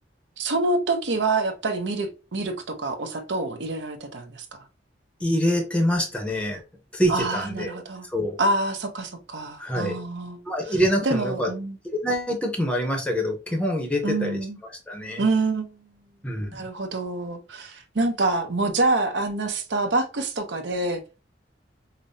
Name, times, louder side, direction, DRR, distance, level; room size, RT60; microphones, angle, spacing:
voice 1, 0.4-4.6 7.1-8.1 8.4-10.4 11.0-11.8 14.0-14.6 15.2-15.9 16.5-21.0, right 2 dB, 70° right, 0.7 m, -26 dB
voice 2, 5.2-6.6 6.9-7.8 8.0-8.4 9.6-10.0 10.5-11.5 11.8-14.4 14.9-15.2 16.2-16.7, equal, 5° left, 0.7 m, -25 dB
5.2 x 2.0 x 2.6 m
head